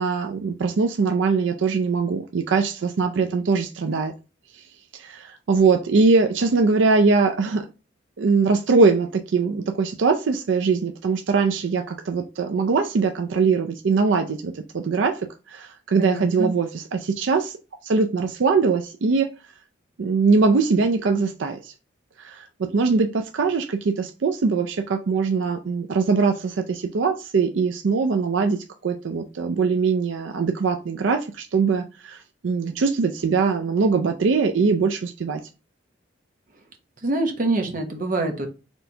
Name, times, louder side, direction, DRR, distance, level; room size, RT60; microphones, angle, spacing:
voice 1, 0.0-4.1 4.5-4.6 4.9-7.7 8.2-15.2 15.5-17.6 17.8-19.3 20.0-21.7 22.2-35.4, right 4 dB, 80° right, 0.4 m, -22 dB
voice 2, 16.0-16.5 37.0-38.5, right 2 dB, 45° right, 0.9 m, -25 dB
4.3 x 3.3 x 2.7 m
head